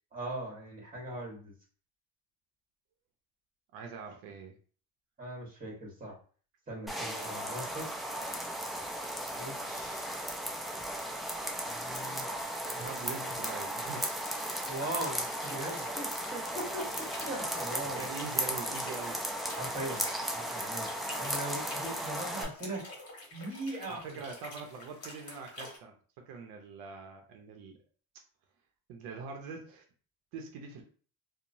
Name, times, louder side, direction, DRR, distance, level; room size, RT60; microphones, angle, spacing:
voice 1, 0.1-1.5 5.2-6.1 6.7-7.8 9.3-10.1 11.6-12.3 12.7-13.3 14.7-18.1 19.4-20.0 20.3-20.9 21.2-22.8 23.3-24.2, right 1 dB, 20° right, -1 dB, 1.3 m, -40 dB
voice 2, 3.7-4.6 12.7-14.3 17.8-19.2 23.9-25.9 26.3-27.8 28.9-29.8 30.3-30.8, right 5 dB, 85° right, 3 dB, 0.6 m, -43 dB
sound 1, 6.9-22.4, right 1 dB, ahead, 0.3 m, -36 dB
sound 2, 14.4-25.8, left 2 dB, 40° left, 1.0 m, -49 dB
2.9 x 2.1 x 2.6 m, 0.42 s
cardioid pair, 115°, 37 cm